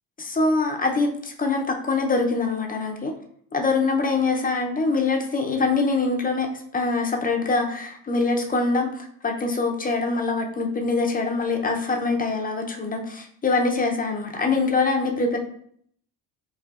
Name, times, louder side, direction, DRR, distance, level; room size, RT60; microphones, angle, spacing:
voice 1, 0.2-3.1 3.5-6.5 6.7-15.4, left 3 dB, 20° left, 3 dB, 0.5 m, -24 dB
4.7 x 2.4 x 2.4 m, 0.63 s
supercardioid pair, 80°, 48 cm